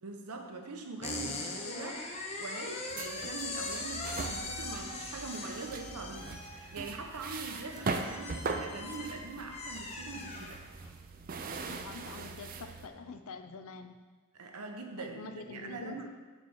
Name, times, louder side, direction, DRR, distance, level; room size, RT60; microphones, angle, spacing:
voice 1, 0.0-10.6 14.3-16.1, right 3 dB, 85° right, 3 dB, 0.9 m, -43 dB
sound 1, 1.0-11.0, left 3 dB, 30° left, 0.7 m, -41 dB
sound 2, 2.9-12.9, right 3 dB, 40° right, 0.5 m, -40 dB
voice 2, 11.7-14.0 15.0-16.1, left 4 dB, 70° left, 8 dB, 0.5 m, -46 dB
6.9 x 4.2 x 6.4 m, 1.4 s
head